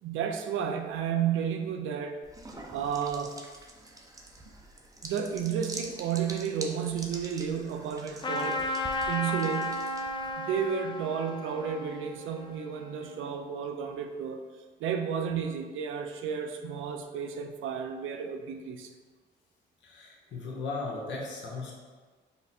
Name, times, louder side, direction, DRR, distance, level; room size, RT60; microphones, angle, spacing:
voice 1, 0.0-2.2 2.7-3.3 5.0-8.7 9.1-9.8 10.4-14.4 14.8-18.9, right 7 dB, 85° right, 6 dB, 0.5 m, -32 dB
sound 1, 2.2-10.3, right 2 dB, 15° right, 0.6 m, -45 dB
Trumpet, 8.2-13.3, left 1 dB, 25° left, 0.5 m, -34 dB
voice 2, 19.8-21.8, left 3 dB, 70° left, -1 dB, 1.1 m, -37 dB
5.6 x 2.2 x 4.2 m, 1.4 s
cardioid pair, 90°, 20 cm